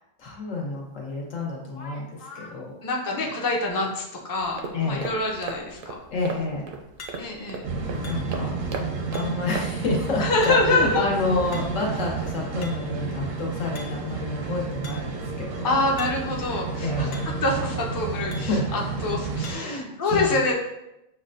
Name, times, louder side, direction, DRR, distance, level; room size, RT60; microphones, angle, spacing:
voice 1, 0.2-2.1 2.3-2.7 4.7-5.1 6.1-6.7 8.0-8.6 9.1-15.7 16.8-17.2 18.3-18.7 19.5-20.4, left 3 dB, 90° left, -2 dB, 1.4 m, -29 dB
sound 1, 1.1-1.2 1.7-2.6 7.0-7.5 8.0-8.6 9.1-9.6 10.4-10.9 11.5-11.9 12.4-13.0 13.8-14.2 14.8-15.2 16.0-16.3 16.6-16.7 17.1-17.5 18.3-18.6 19.4-19.8, left 3 dB, 60° left, 0.8 m, -44 dB
voice 2, 2.8-5.9 7.2-7.6 10.2-11.0 15.6-20.5, left 2 dB, 35° left, -1 dB, 0.3 m, -26 dB
sound 2, 4.4-10.1, right 4 dB, 60° right, 0.6 m, -37 dB
sound 3, 7.6-19.5, right 4 dB, 80° right, 1.0 m, -31 dB
6.6 x 2.2 x 2.5 m, 0.89 s
omnidirectional pair, 1.3 m